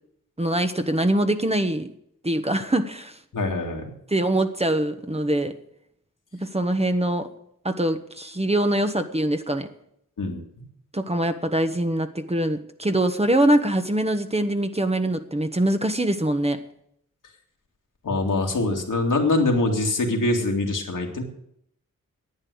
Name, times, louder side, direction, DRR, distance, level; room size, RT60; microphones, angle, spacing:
voice 1, 0.4-1.9 2.2-3.2 4.1-5.5 6.3-7.3 7.6-9.7 10.9-16.6 18.1-18.2, right 1 dB, 20° right, 7 dB, 1.2 m, -23 dB
voice 2, 3.3-3.9 10.2-10.4 18.0-21.2, left 2 dB, 70° left, 1 dB, 2.4 m, -23 dB
11.0 x 8.9 x 7.9 m, 0.73 s
cardioid pair, 50°, 32 cm